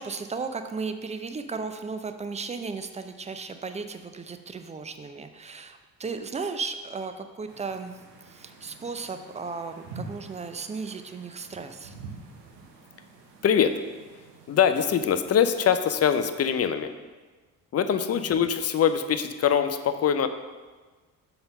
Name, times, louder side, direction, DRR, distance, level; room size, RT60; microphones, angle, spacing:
voice 1, 0.0-8.0 8.3-11.9 18.1-18.5, right 4 dB, 15° right, 8 dB, 0.5 m, -35 dB
sound 1, 7.5-15.6, right 3 dB, 75° right, 0.9 m, -47 dB
voice 2, 13.4-13.8 14.5-16.9 17.7-20.3, left 8 dB, 30° left, 10 dB, 0.5 m, -23 dB
6.9 x 3.9 x 5.4 m, 1.3 s
figure-of-eight pair, 40°, 49 cm